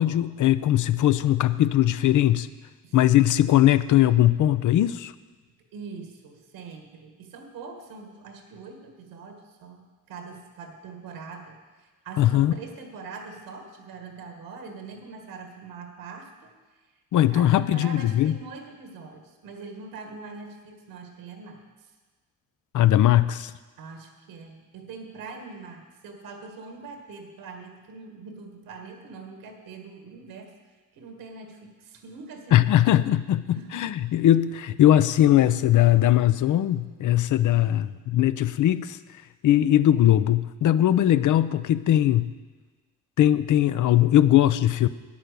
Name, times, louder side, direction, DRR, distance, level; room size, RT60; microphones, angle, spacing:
voice 1, 0.0-2.5 2.9-5.1 12.2-12.5 17.1-18.3 22.7-23.5 32.5-39.0 39.4-42.3 43.2-44.9, left 12 dB, 60° left, 15 dB, 0.6 m, -20 dB
voice 2, 5.7-21.9 23.8-30.5 30.9-32.7 33.5-33.9 37.6-38.0, right 4 dB, 85° right, 4 dB, 1.7 m, -43 dB
9.2 x 8.8 x 6.8 m, 1.3 s
cardioid pair, 75°, 35 cm